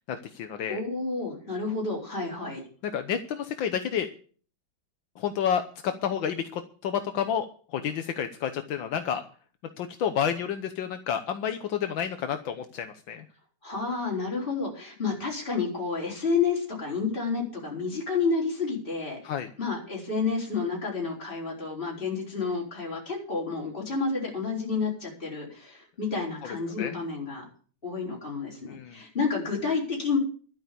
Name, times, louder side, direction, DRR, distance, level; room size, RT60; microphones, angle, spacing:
voice 1, 0.1-0.8 2.8-4.1 5.2-9.2 9.8-13.2 19.2-19.5 26.4-26.9 28.7-29.0, left 8 dB, 80° left, 7 dB, 1.7 m, -30 dB
voice 2, 0.7-2.6 13.6-19.2 19.6-27.4 27.8-30.2, left 4 dB, 25° left, -4 dB, 5.1 m, -30 dB
12.0 x 9.7 x 6.9 m, 0.42 s
omnidirectional pair, 2.1 m